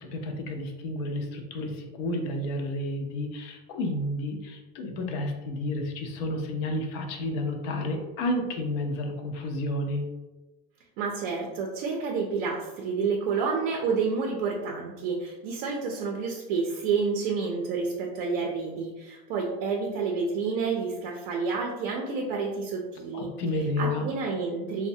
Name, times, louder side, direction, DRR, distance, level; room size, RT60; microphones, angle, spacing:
voice 1, 0.0-10.0 23.1-24.1, left 1 dB, 45° left, 4 dB, 0.5 m, -31 dB
voice 2, 11.0-23.3 23.8-24.9, right 5 dB, 50° right, 0 dB, 0.5 m, -29 dB
3.1 x 2.1 x 2.6 m, 1.1 s
supercardioid pair, 160°, 30 cm